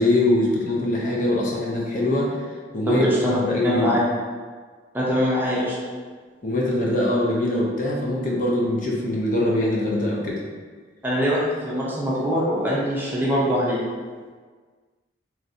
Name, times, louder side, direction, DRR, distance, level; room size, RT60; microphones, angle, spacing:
voice 1, 0.0-2.4 2.7-4.0 6.4-10.4, left 1 dB, 45° left, -3 dB, 0.5 m, -23 dB
voice 2, 2.9-3.4 3.6-4.0 4.9-5.7 11.0-13.8, equal, 10° right, -7 dB, 0.5 m, -23 dB
3.1 x 2.6 x 2.6 m, 1.5 s
head